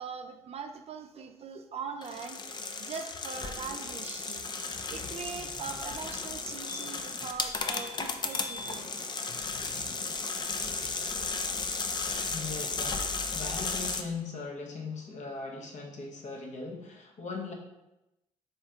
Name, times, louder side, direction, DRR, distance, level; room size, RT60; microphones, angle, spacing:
voice 1, 0.0-2.4 2.8-4.5 4.9-8.9, right 6 dB, 45° right, 6 dB, 0.4 m, -41 dB
sound 1, 2.0-14.0, left 4 dB, 30° left, 0.4 m, -34 dB
sound 2, 6.3-6.4 6.7-7.1 7.5-7.9 8.3-8.7 11.1-11.2 11.4-11.5, left 4 dB, 75° left, 1.2 m, -44 dB
voice 2, 12.3-17.5, left 4 dB, 60° left, 1 dB, 0.8 m, -39 dB
3.5 x 2.8 x 3.3 m, 0.94 s
hypercardioid pair, 50°, 14 cm